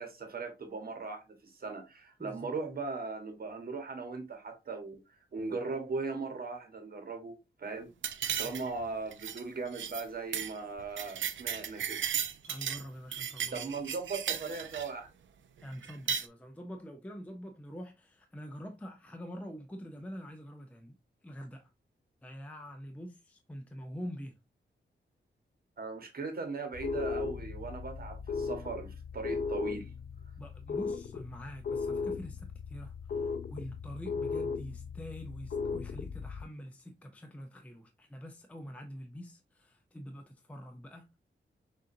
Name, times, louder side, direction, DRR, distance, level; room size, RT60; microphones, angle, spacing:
voice 1, 0.0-7.9 8.4-12.0 13.5-15.1 25.8-29.8, right 4 dB, 50° right, 1.1 m, -39 dB
sound 1, 8.0-8.8 9.1-9.4 9.7-10.0 10.3-10.5 10.8-12.8 13.1-14.9 15.8-16.3, right 8 dB, 80° right, 0.5 m, -35 dB
voice 2, 8.3-8.7 12.4-13.7 15.6-21.0 21.2-21.7 22.2-24.4 30.4-41.2, equal, 5° left, 0.5 m, -45 dB
sound 2, 26.7-36.5, left 5 dB, 50° left, 0.5 m, -37 dB
6.5 x 2.6 x 2.6 m
wide cardioid pair, 145°, 19 cm